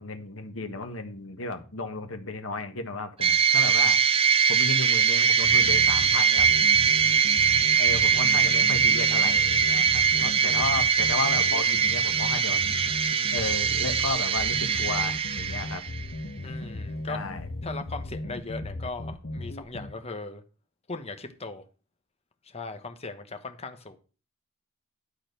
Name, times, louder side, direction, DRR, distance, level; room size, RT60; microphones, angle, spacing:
voice 1, 0.0-4.0 4.5-6.5 7.8-12.6 13.3-15.8 17.1-17.5, left 3 dB, 85° left, 1.4 m, -34 dB
sound 1, 3.2-16.0, right 6 dB, 30° right, 0.5 m, -22 dB
sound 2, 5.4-19.9, left 1 dB, 55° left, 1.0 m, -37 dB
voice 2, 10.1-10.6 16.4-17.2 17.6-20.4 20.9-21.6 22.4-24.0, left 3 dB, 30° left, 1.2 m, -38 dB
11.5 x 4.2 x 6.7 m
head